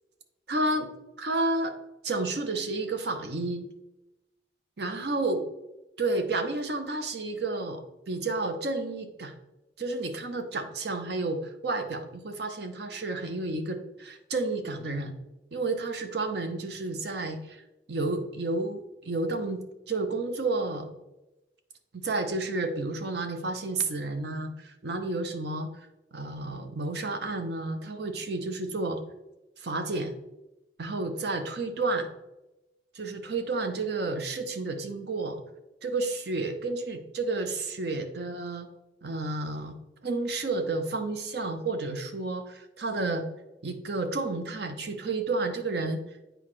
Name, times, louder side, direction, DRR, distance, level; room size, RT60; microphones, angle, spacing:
voice 1, 0.5-0.9 1.2-1.7 2.0-3.6 4.8-5.4 6.0-9.3 9.8-15.1 15.5-17.6 17.9-20.9 21.9-25.7 26.1-29.0 29.6-30.1 30.8-32.1 32.9-35.4 35.8-38.7 39.0-39.7 40.0-43.3 43.6-46.0, right 2 dB, 65° right, 7 dB, 0.8 m, -31 dB
7.9 x 5.0 x 3.2 m, 0.95 s
head